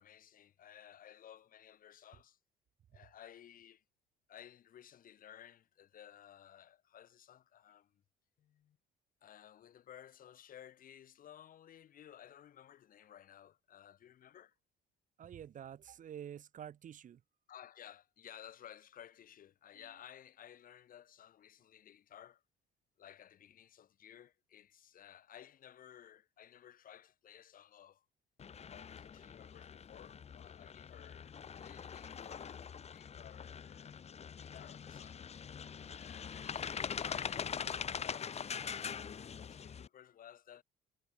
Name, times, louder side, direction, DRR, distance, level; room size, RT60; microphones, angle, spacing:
voice 1, 0.0-2.4 2.9-3.8 4.3-8.0 8.4-8.8 9.2-14.5 17.5-22.4 23.0-28.1 28.7-34.0 34.4-35.3 35.9-40.6, left 10 dB, 55° left, 7.3 m, -56 dB
voice 2, 15.2-17.2, right 9 dB, 50° right, 2.1 m, -48 dB
sound 1, 28.4-39.9, left 7 dB, 40° left, 3.2 m, -43 dB
cardioid pair, 110°, 17 cm